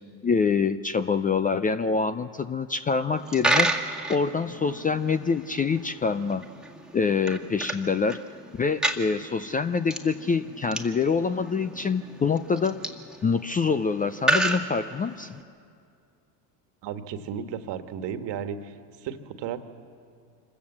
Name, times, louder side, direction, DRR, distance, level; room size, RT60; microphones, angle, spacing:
voice 1, 0.2-3.7 4.1-6.4 6.9-8.2 8.6-12.8 13.2-15.4, left 5 dB, 20° left, 12 dB, 0.5 m, -25 dB
Coin (dropping), 3.1-15.4, right 2 dB, ahead, 1.8 m, -31 dB
voice 2, 16.8-18.7 19.0-19.6, right 8 dB, 55° right, 8 dB, 1.7 m, -34 dB
25.5 x 15.5 x 7.3 m, 2.3 s
supercardioid pair, 90°, 49 cm